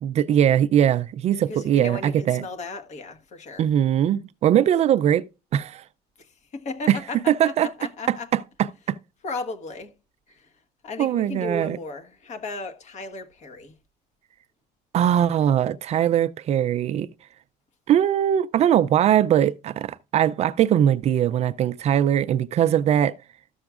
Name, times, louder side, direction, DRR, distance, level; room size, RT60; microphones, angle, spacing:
voice 1, 0.0-2.4 3.6-5.2 5.5-5.8 6.9-7.0 7.3-7.7 8.1-8.4 8.9-9.0 11.0-11.8 14.9-17.1 17.9-23.1, right 10 dB, 40° right, 0.4 m, -21 dB
voice 2, 1.5-3.7 6.2-8.3 9.2-10.0 10.3-10.5 10.8-13.7, left 3 dB, 45° left, 1.4 m, -35 dB
13.0 x 7.0 x 2.4 m
cardioid pair, 150°, 17 cm